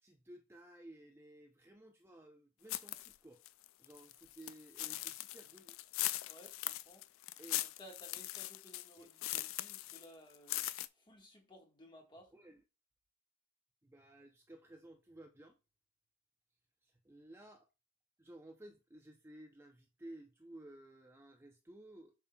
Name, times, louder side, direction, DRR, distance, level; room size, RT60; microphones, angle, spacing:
voice 1, 0.0-3.4 3.8-5.8 7.4-7.6 9.0-9.1 12.3-12.6 13.8-15.6 16.8-17.7 18.2-22.1, right 1 dB, 10° right, 0.6 m, -56 dB
sound 1, 2.7-3.1 3.4-10.0 10.3-10.9, left 16 dB, 65° left, 0.3 m, -40 dB
voice 2, 6.3-7.1 7.8-10.7 10.9-12.3, equal, 20° left, 1.5 m, -58 dB
7.1 x 5.8 x 2.3 m
head